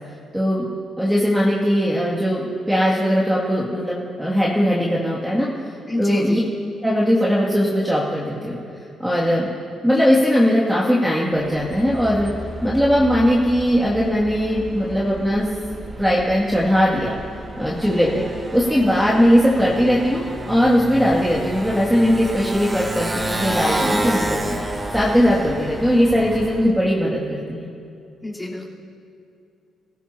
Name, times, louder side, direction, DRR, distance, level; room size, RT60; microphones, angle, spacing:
voice 1, 0.3-0.7 1.0-5.5 6.0-6.4 6.8-8.6 9.0-9.5 9.8-12.3 12.6-15.5 16.0-17.2 17.6-18.3 18.5-24.6 24.9-27.7, equal, 5° right, -6 dB, 2.4 m, -19 dB
voice 2, 5.9-6.4 28.2-28.7, left 2 dB, 15° left, -6 dB, 3.8 m, -28 dB
Motorcycle, 11.4-26.7, right 1 dB, 20° right, 2.0 m, -30 dB
28.0 x 16.5 x 2.9 m, 2.6 s
cardioid pair, 90°, 0 cm